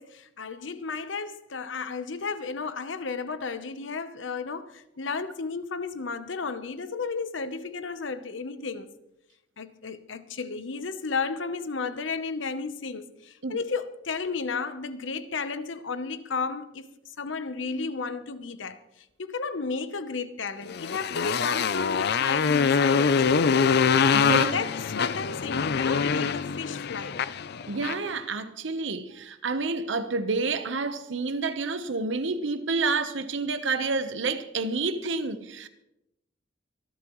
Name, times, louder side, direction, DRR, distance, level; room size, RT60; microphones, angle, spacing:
voice 1, 0.0-8.9 9.6-16.9 17.2-18.8 19.2-23.8 24.3-27.3, left 4 dB, 75° left, 0.9 m, -33 dB
Motorcycle, 20.7-28.1, left 6 dB, 55° left, 0.5 m, -24 dB
voice 2, 24.1-24.6 27.7-35.7, right 3 dB, 70° right, 1.0 m, -29 dB
25.5 x 11.5 x 3.1 m
head